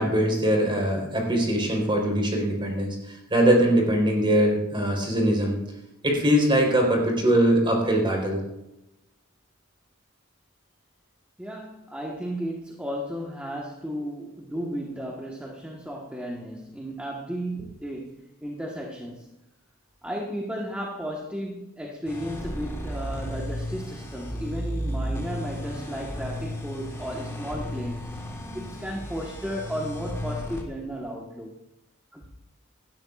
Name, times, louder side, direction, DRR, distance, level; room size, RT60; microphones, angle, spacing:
voice 1, 0.0-5.6 6.0-8.4, right 1 dB, 25° right, 0 dB, 4.0 m, -22 dB
voice 2, 11.4-19.3 20.0-28.1 28.5-31.5 32.1-32.2, equal, 5° right, -2 dB, 1.3 m, -34 dB
sound 1, 22.1-30.6, equal, 15° left, 2.4 m, -34 dB
17.5 x 12.5 x 2.4 m, 0.90 s
head